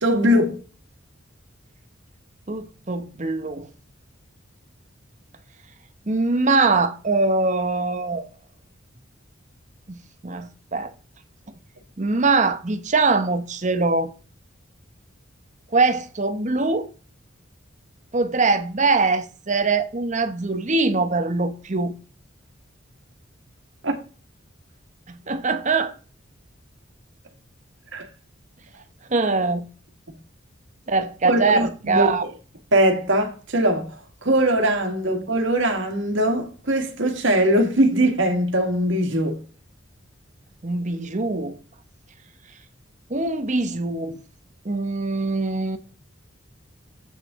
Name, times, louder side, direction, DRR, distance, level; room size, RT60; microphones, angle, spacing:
voice 1, 0.0-0.6 23.8-24.0 27.9-28.1 31.2-32.1 32.7-39.4, right 1 dB, 65° right, 1.7 m, -21 dB
voice 2, 2.5-3.7 6.1-8.3 9.9-10.9 12.0-14.1 15.7-16.9 18.1-21.9 25.1-25.9 29.1-29.7 30.9-32.2 40.6-41.6 43.1-44.2 44.6-45.8, right 3 dB, 35° right, 0.9 m, -22 dB
8.2 x 6.5 x 3.6 m
head